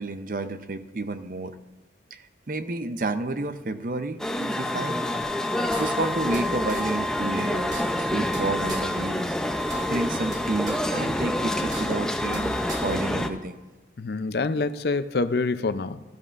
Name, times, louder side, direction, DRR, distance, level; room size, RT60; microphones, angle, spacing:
voice 1, 0.0-1.6 2.1-5.0 5.8-7.7 8.0-13.6, right 2 dB, 50° right, 10 dB, 0.6 m, -31 dB
sound 1, 4.2-13.3, left 1 dB, 5° left, 0.5 m, -27 dB
sound 2, 5.2-5.3 5.7-6.4 6.7-6.8 7.2-7.3 7.6-8.4 8.7-8.8 9.2-9.3 9.6-10.4 10.7-10.8 11.2-11.3 11.6-12.4 12.7-12.8, right 1 dB, 20° right, 1.3 m, -37 dB
voice 2, 14.0-16.0, left 3 dB, 65° left, 12 dB, 0.5 m, -26 dB
16.0 x 12.0 x 2.5 m, 1.2 s
head